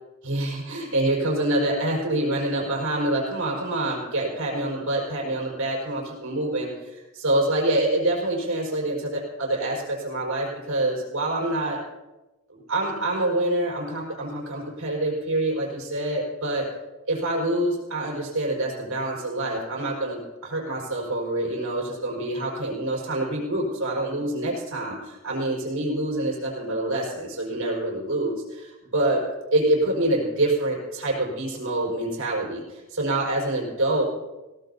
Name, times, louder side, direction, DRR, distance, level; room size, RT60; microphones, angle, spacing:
voice 1, 0.2-11.8 12.5-16.7 17.1-29.2 29.5-34.1, right 1 dB, 75° right, -2 dB, 5.2 m, -26 dB
21.0 x 17.5 x 2.8 m, 1.1 s
head